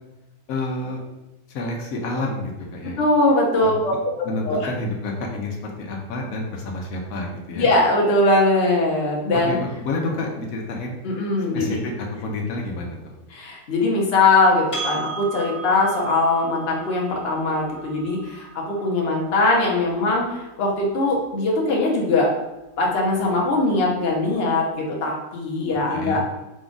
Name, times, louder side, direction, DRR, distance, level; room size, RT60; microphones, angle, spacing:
voice 1, 0.5-1.0 1.5-3.0 3.6-3.8 4.2-7.7 9.5-11.0 11.5-13.0 25.9-26.2, left 2 dB, 85° left, 1 dB, 1.1 m, -29 dB
voice 2, 3.0-3.9 4.4-4.7 7.6-9.5 11.0-11.8 13.3-22.3 22.8-26.2, left 2 dB, 50° left, -2 dB, 1.0 m, -21 dB
Percussion, 14.7-19.5, right 4 dB, 25° left, 0.9 m, -36 dB
5.1 x 2.4 x 3.8 m, 1.0 s
omnidirectional pair, 1.4 m